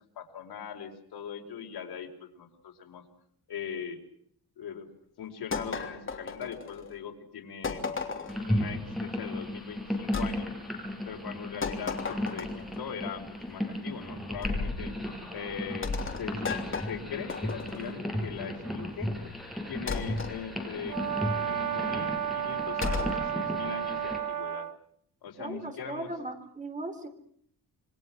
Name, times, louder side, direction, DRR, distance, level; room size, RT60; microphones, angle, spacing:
voice 1, 0.0-3.0 3.5-4.0 4.6-4.9 5.2-7.8 8.5-10.5 11.0-14.9 15.3-16.5 16.8-19.1 19.7-21.0 21.4-24.7 25.2-26.1, left 7 dB, 80° left, 3 dB, 5.0 m, -40 dB
sound 1, 5.5-6.9 7.6-8.5 10.1-10.3 11.6-12.7 14.4-14.8 15.8-17.9 19.9-20.4 22.8-23.2, left 4 dB, 30° left, 3.3 m, -34 dB
sound 2, 8.3-24.2, left 1 dB, ahead, 6.6 m, -35 dB
Brass instrument, 20.9-24.8, right 9 dB, 55° right, 1.7 m, -32 dB
voice 2, 25.4-27.1, right 2 dB, 20° right, 8 dB, 3.8 m, -38 dB
28.0 x 24.0 x 6.2 m, 0.64 s
wide cardioid pair, 165°, 38 cm